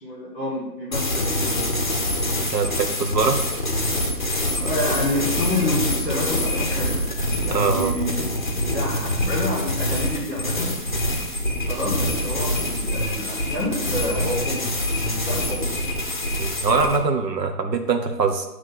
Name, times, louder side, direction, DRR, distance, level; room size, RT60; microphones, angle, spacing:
voice 1, 0.0-1.6 4.6-6.9 7.4-8.3 8.6-10.7 11.7-14.6 15.0-15.8, left 1 dB, 10° left, -8 dB, 1.3 m, -28 dB
sound 1, 0.9-17.0, left 1 dB, 30° left, 0.6 m, -25 dB
voice 2, 2.5-3.4 7.5-7.9 16.4-18.5, right 4 dB, 75° right, 6 dB, 1.1 m, -22 dB
7.4 x 3.2 x 5.9 m, 0.93 s
hypercardioid pair, 170°, 50 cm